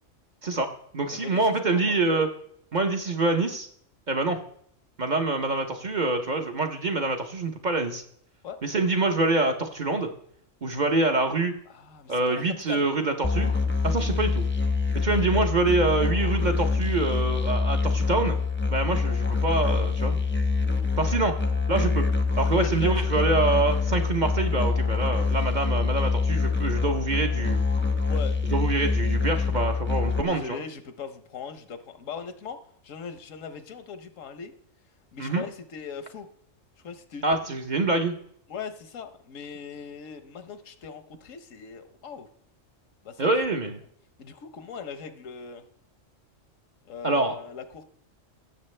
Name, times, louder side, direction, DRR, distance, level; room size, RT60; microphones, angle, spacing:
voice 1, 0.4-2.3 2.7-3.7 4.1-4.4 5.0-8.0 8.6-10.1 10.6-11.5 12.1-13.5 13.8-14.4 14.9-18.4 18.7-20.2 21.0-21.3 21.7-22.1 22.4-27.6 28.5-30.6 35.2-35.4 37.2-38.2 43.2-43.8 47.0-47.4, right 3 dB, 40° right, 5 dB, 0.9 m, -25 dB
voice 2, 1.1-2.0 8.4-8.6 11.7-12.9 15.3-15.4 22.6-23.2 28.1-28.4 30.2-32.6 32.8-34.5 35.1-36.3 36.8-37.6 38.5-42.3 43.0-43.3 44.2-45.6 46.9-47.8, left 6 dB, 80° left, 10 dB, 1.3 m, -39 dB
Musical instrument, 13.2-30.2, left 4 dB, 10° left, 0.7 m, -25 dB
16.5 x 7.3 x 3.2 m, 0.65 s
omnidirectional pair, 1.3 m